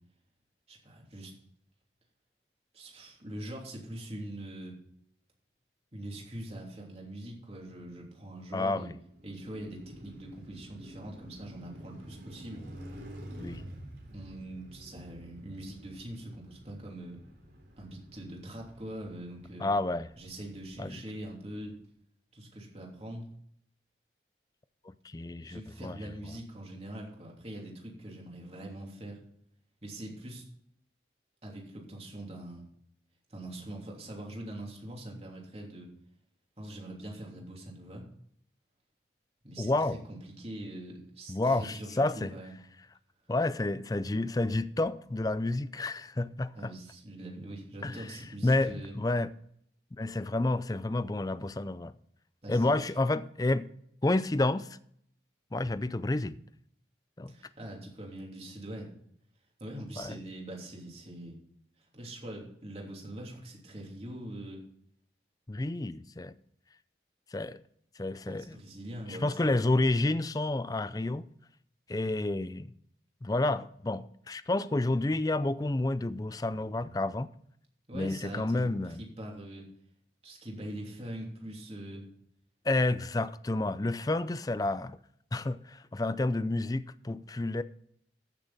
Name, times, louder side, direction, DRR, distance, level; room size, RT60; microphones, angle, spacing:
voice 1, 0.7-1.3 2.7-4.8 5.9-8.9 9.2-12.7 14.1-17.2 17.8-19.7 20.2-21.8 22.3-23.3 25.4-29.2 29.8-30.4 31.4-32.6 33.3-35.9 36.6-38.1 39.4-42.5 46.5-48.9 52.4-52.8 57.3-58.9 59.6-61.3 61.8-64.6 68.2-69.5 77.9-79.7 80.2-82.1, right 1 dB, 35° right, 3.0 m, -43 dB
voice 2, 8.5-8.9 13.4-13.6 19.6-20.1 20.8-21.0 25.0-26.0 39.6-40.0 41.3-42.3 43.3-46.7 47.8-48.0 48.4-49.3 50.0-51.9 52.5-53.7 54.0-54.8 55.5-56.4 57.2-57.3 60.0-60.2 65.5-66.3 67.3-67.6 68.0-68.5 69.1-71.3 71.9-72.7 73.2-77.3 77.9-79.0 82.7-85.0 85.3-87.6, left 2 dB, 20° left, 0.4 m, -30 dB
Car passing by, 9.0-21.2, equal, 65° right, 3.6 m, -49 dB
14.5 x 6.9 x 4.1 m
head